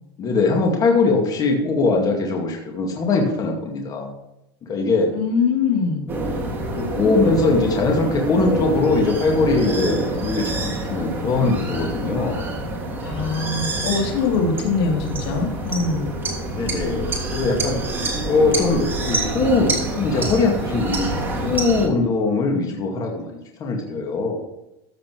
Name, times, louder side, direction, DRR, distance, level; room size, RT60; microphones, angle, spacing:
voice 1, 0.2-4.1 4.6-5.1 6.7-12.5 16.5-17.8 18.2-23.3 23.6-24.5, left 3 dB, 30° left, 1 dB, 2.1 m, -21 dB
voice 2, 5.1-6.1 13.0-16.1, left 5 dB, 80° left, 1 dB, 3.3 m, -22 dB
sound 1, 6.1-21.9, right 1 dB, 15° right, 2.9 m, -26 dB
14.0 x 7.4 x 4.6 m, 0.89 s
supercardioid pair, 150°, 13 cm